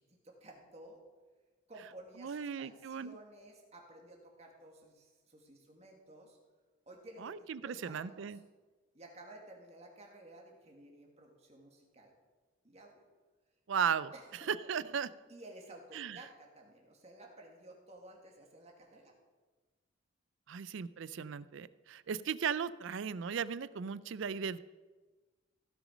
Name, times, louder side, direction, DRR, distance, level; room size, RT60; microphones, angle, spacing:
voice 1, 0.2-1.0 1.7-6.4 6.9-8.3 8.9-12.1 12.6-13.0 14.1-14.5 14.8-14.9 15.3-19.2, right 1 dB, 30° right, 0 dB, 2.0 m, -54 dB
voice 2, 2.2-3.2 7.2-8.4 13.7-14.1 14.5-15.1 15.9-16.2 20.5-24.6, right 7 dB, 65° right, 16 dB, 0.4 m, -36 dB
16.0 x 6.1 x 5.2 m, 1.3 s
head